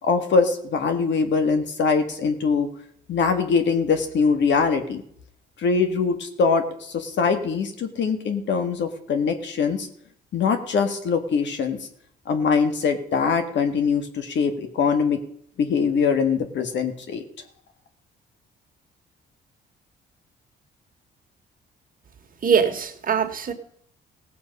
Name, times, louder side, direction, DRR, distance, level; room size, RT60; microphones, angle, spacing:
voice 1, 0.0-2.7 3.1-5.0 5.6-9.9 10.3-11.8 12.3-15.2 15.6-17.2, left 5 dB, 65° left, 7 dB, 1.6 m, -22 dB
voice 2, 22.4-23.5, right 7 dB, 45° right, 5 dB, 1.8 m, -22 dB
16.5 x 7.4 x 5.4 m, 0.67 s
cardioid pair, 90°, 20 cm